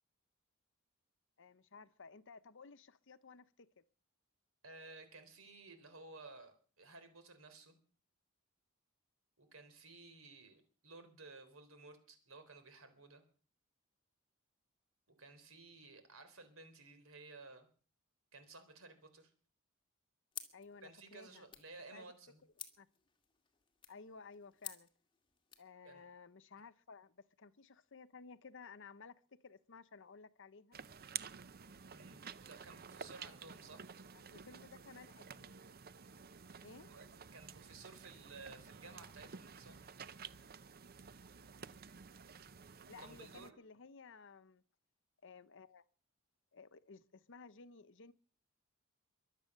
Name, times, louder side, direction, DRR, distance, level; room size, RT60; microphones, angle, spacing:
voice 1, 1.4-3.8 20.5-21.5 21.9-22.1 22.8-22.9 23.9-24.9 25.6-29.2 29.4-30.8 34.1-35.7 36.6-36.9 42.9-44.6 45.2-45.8 46.5-48.1, left 4 dB, 65° left, 0.9 m, -56 dB
voice 2, 4.6-7.7 9.4-13.2 15.1-17.7 18.3-19.3 20.8-22.4 25.8-26.0 31.9-33.9 36.8-37.1 37.3-39.8 43.0-43.6, right 3 dB, 70° right, 3.8 m, -56 dB
sound 1, 20.3-25.7, left 8 dB, 25° left, 2.2 m, -54 dB
sound 2, 30.7-43.5, right 7 dB, 45° right, 0.7 m, -52 dB
23.5 x 8.4 x 6.6 m
head